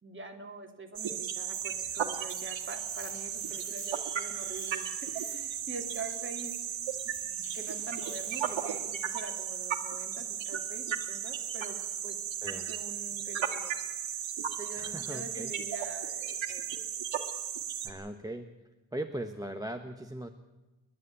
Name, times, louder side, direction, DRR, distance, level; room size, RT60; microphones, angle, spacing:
voice 1, 0.0-6.5 7.0-13.8 14.6-16.6, right 3 dB, 25° right, 2 dB, 3.1 m, -45 dB
sound 1, 1.0-17.9, right 8 dB, 65° right, 2.2 m, -35 dB
sound 2, 1.5-9.1, left 3 dB, 75° left, 5.9 m, -52 dB
voice 2, 14.7-15.5 17.8-18.5 18.9-20.3, right 1 dB, 10° right, 5 dB, 1.0 m, -39 dB
30.0 x 11.5 x 8.5 m, 1.1 s
cardioid pair, 110°, 49 cm